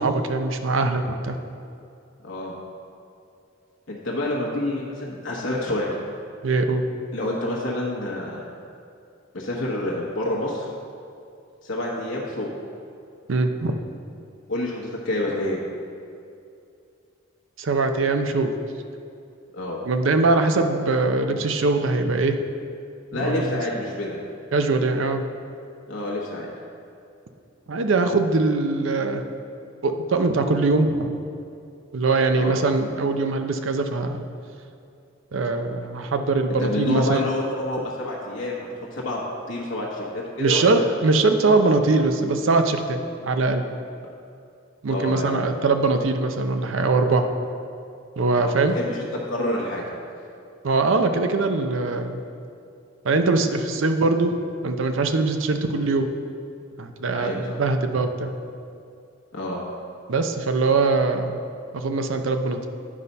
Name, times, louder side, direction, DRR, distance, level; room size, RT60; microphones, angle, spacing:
voice 1, 0.0-1.4 6.4-6.8 13.3-13.7 17.6-18.5 19.9-22.4 23.1-23.6 24.5-25.2 27.7-29.2 29.8-31.1 31.9-34.2 35.3-37.2 40.4-43.6 44.8-47.3 48.2-48.7 50.6-52.2 53.0-54.3 54.6-56.1 56.8-58.3 60.1-61.4 61.7-62.7, right 3 dB, 75° right, 7 dB, 0.6 m, -22 dB
voice 2, 2.2-2.5 3.9-5.9 7.1-8.5 9.3-10.7 11.6-12.5 14.5-15.6 19.5-19.8 23.1-24.3 25.9-26.5 32.3-32.6 36.5-40.9 44.9-45.3 48.3-49.8 57.1-57.6 59.3-59.6, left 1 dB, 70° left, -4 dB, 1.1 m, -28 dB
9.6 x 4.1 x 5.4 m, 2.5 s
head